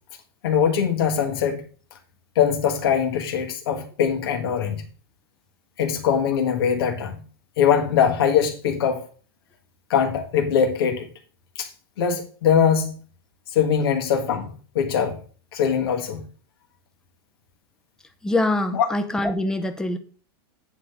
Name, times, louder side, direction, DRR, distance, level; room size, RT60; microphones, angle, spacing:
voice 1, 0.4-1.6 2.4-4.8 5.8-7.2 7.6-9.0 9.9-11.1 11.6-11.7 12.0-13.0 13.5-15.2 15.5-16.2 18.7-18.9, left 7 dB, 70° left, 1.7 m, -22 dB
voice 2, 18.2-20.0, left 1 dB, 5° left, 0.7 m, -24 dB
9.0 x 3.9 x 6.7 m
supercardioid pair, 150°, 13 cm